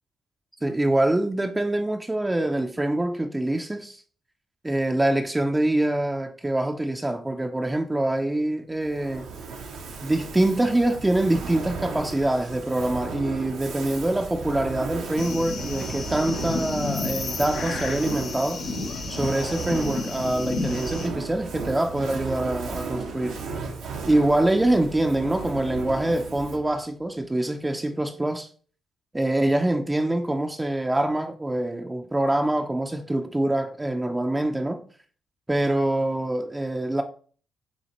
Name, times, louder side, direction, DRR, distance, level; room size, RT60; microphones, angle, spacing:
voice 1, 0.6-4.0 4.6-9.3 10.0-18.6 19.1-23.4 24.1-28.5 29.1-34.8 35.5-37.0, right 1 dB, 15° right, 0.5 m, -25 dB
Fire, 8.8-26.8, right 5 dB, 80° right, 0.8 m, -35 dB
sound 1, 15.2-21.1, left 4 dB, 65° left, 0.8 m, -32 dB
7.0 x 2.4 x 2.9 m
supercardioid pair, 50°, 0 cm